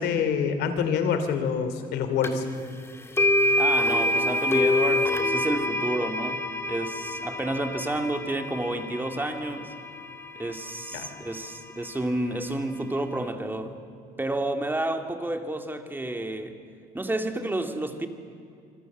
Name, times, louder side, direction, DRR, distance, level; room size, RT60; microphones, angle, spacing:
voice 1, 0.0-2.4 10.9-11.1, left 6 dB, 80° left, 9 dB, 2.8 m, -26 dB
sound 1, 2.2-2.3 3.2-11.2, left 1 dB, 15° left, 2.3 m, -26 dB
voice 2, 3.6-9.7 10.4-13.8 14.2-16.6 16.9-18.1, right 1 dB, 10° right, 6 dB, 2.2 m, -30 dB
26.0 x 25.0 x 7.3 m, 2.5 s
cardioid pair, 110°, 17 cm